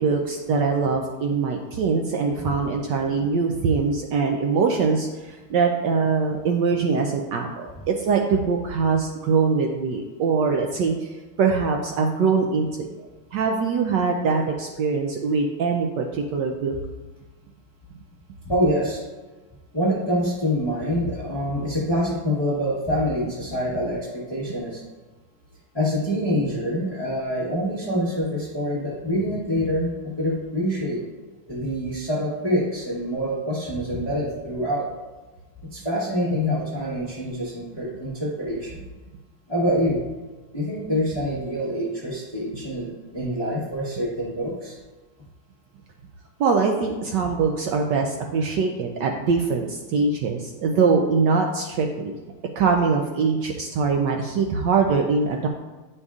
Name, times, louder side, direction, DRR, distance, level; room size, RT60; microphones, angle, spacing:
voice 1, 0.0-12.9 13.3-16.7 46.4-52.1 52.6-55.5, right 5 dB, 80° right, 2 dB, 1.0 m, -23 dB
voice 2, 18.4-19.0 19.7-24.8 25.7-31.0 31.5-34.9 35.7-38.8 39.5-40.0 40.5-44.8, equal, 20° left, -7 dB, 0.7 m, -26 dB
9.5 x 5.2 x 2.4 m, 1.2 s
omnidirectional pair, 2.4 m